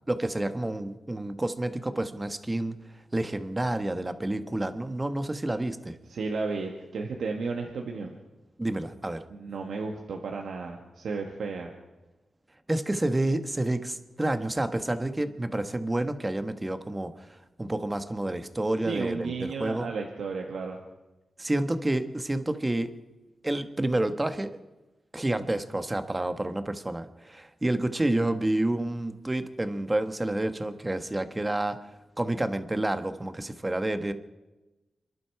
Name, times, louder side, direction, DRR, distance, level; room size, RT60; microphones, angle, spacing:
voice 1, 0.1-2.7 3.1-6.0 8.6-9.2 12.7-17.1 17.6-19.9 21.4-22.9 23.4-24.6 25.1-31.8 32.2-34.1, right 1 dB, 20° right, 9 dB, 1.4 m, -29 dB
voice 2, 6.1-8.2 9.3-11.7 18.8-20.8, right 4 dB, 85° right, 2 dB, 1.6 m, -33 dB
26.5 x 11.5 x 4.8 m, 1.1 s
cardioid pair, 60°, 0 cm